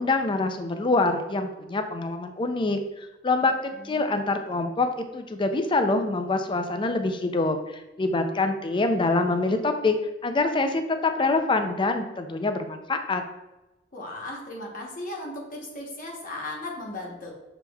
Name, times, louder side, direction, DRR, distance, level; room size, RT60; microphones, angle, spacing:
voice 1, 0.0-3.5 3.8-10.0 10.2-13.2, left 3 dB, 25° left, 7 dB, 0.4 m, -25 dB
voice 2, 3.7-4.2 13.9-17.3, left 1 dB, 45° left, -2 dB, 1.0 m, -36 dB
7.0 x 3.0 x 2.3 m, 1.0 s
head